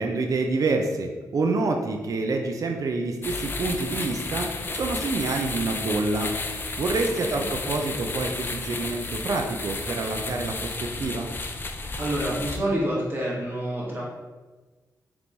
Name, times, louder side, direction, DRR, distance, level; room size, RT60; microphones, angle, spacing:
voice 1, 0.0-6.3 6.8-11.3, right 3 dB, 50° right, 3 dB, 0.5 m, -27 dB
sound 1, 3.2-12.6, left 3 dB, 30° left, 0.4 m, -32 dB
voice 2, 12.0-14.0, right 1 dB, 30° right, -5 dB, 1.4 m, -28 dB
3.6 x 3.0 x 3.9 m, 1.3 s
cardioid pair, 90°, 7 cm